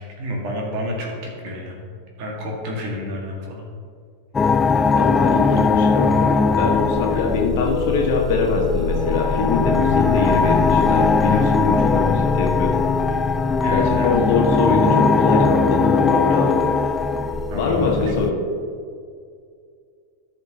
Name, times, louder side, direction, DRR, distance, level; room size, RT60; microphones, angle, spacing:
voice 1, 0.0-1.8 2.2-3.6 7.1-7.2 10.3-10.4 13.6-14.1 17.5-18.1, equal, 45° right, -1 dB, 1.8 m, -30 dB
sound 1, 4.3-18.3, left 4 dB, 15° left, 0.3 m, -19 dB
voice 2, 4.9-12.8 13.7-16.6 17.5-18.3, left 4 dB, 50° left, -1 dB, 1.6 m, -23 dB
14.5 x 5.9 x 2.9 m, 2.2 s
figure-of-eight pair, 90°, 0 cm